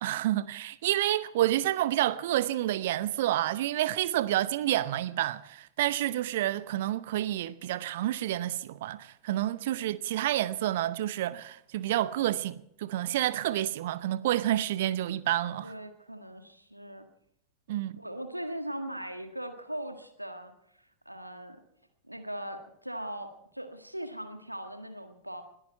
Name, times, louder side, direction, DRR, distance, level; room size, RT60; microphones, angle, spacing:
voice 1, 0.0-15.7 17.7-18.0, right 13 dB, 55° right, 0.8 m, -29 dB
voice 2, 15.6-17.0 18.0-20.5 21.0-21.6 22.1-25.4, right 1 dB, 90° right, 1.6 m, -39 dB
21.0 x 14.0 x 4.5 m
figure-of-eight pair, 90°, 0 cm